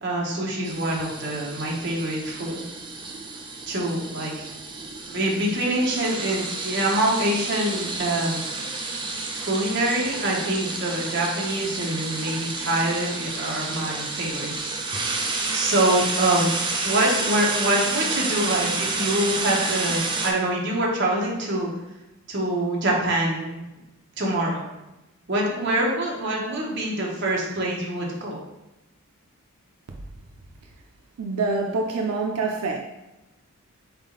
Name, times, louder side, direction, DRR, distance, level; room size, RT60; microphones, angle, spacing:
voice 1, 0.0-2.6 3.7-4.3 5.1-8.4 9.4-15.0 15.5-16.5 16.8-21.7 22.3-23.6 24.2-24.6 25.3-28.4, right 1 dB, 50° right, -2 dB, 1.0 m, -25 dB
sound 1, 0.6-20.3, right 3 dB, 20° right, 0.4 m, -30 dB
voice 2, 31.2-32.8, right 3 dB, 85° right, 2 dB, 0.4 m, -25 dB
4.0 x 3.5 x 3.7 m, 0.99 s
head